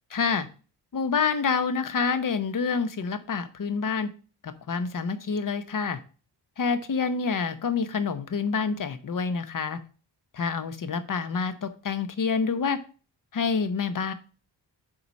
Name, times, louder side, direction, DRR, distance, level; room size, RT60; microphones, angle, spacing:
voice 1, 0.1-0.5 0.9-4.1 4.4-6.0 6.6-9.8 10.3-12.8 13.3-14.1, left 5 dB, 50° left, 11 dB, 0.9 m, -27 dB
7.6 x 4.2 x 6.2 m, 0.36 s
wide cardioid pair, 155°, 43 cm